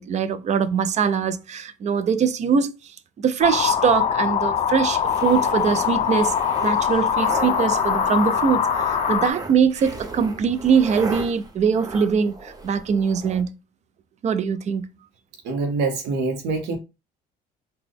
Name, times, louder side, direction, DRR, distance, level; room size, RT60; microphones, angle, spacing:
voice 1, 0.0-2.7 3.2-6.3 6.6-13.5 14.2-14.9, right 6 dB, 45° right, 0.5 m, -22 dB
sound 1, 3.4-9.3, left 8 dB, 40° left, 0.4 m, -22 dB
sound 2, 4.9-13.4, right 3 dB, 20° right, 0.9 m, -35 dB
voice 2, 15.4-16.8, right 3 dB, 90° right, 0.9 m, -25 dB
3.9 x 2.3 x 3.4 m
cardioid pair, 110°, 17 cm